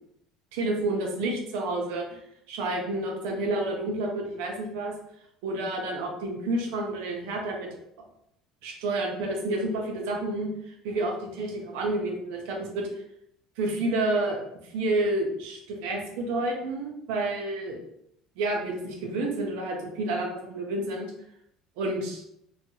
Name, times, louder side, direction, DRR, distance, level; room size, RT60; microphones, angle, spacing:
voice 1, 0.5-2.2 2.5-4.9 5.4-7.7 8.6-12.9 13.6-17.8 18.4-21.1 21.8-22.2, right 2 dB, 90° right, 0 dB, 0.7 m, -29 dB
3.2 x 2.2 x 2.8 m, 0.77 s
cardioid pair, 150°, 0 cm